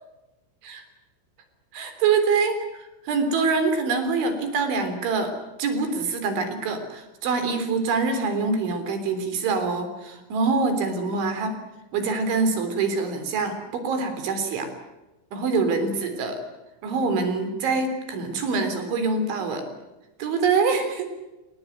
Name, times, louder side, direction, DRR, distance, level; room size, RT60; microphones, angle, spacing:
voice 1, 1.7-2.6 3.1-5.3 5.6-11.6 11.9-14.7 15.3-16.4 16.8-19.7 20.2-21.1, right 4 dB, 70° right, 8 dB, 5.9 m, -25 dB
28.0 x 19.0 x 9.3 m, 1.0 s
omnidirectional pair, 5.6 m